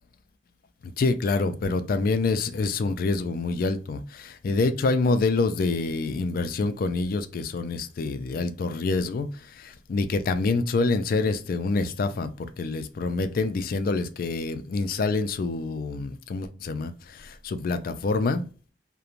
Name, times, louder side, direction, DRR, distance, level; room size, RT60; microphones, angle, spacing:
voice 1, 0.8-18.5, left 3 dB, 50° left, 0.3 m, -26 dB
2.4 x 2.1 x 2.9 m
head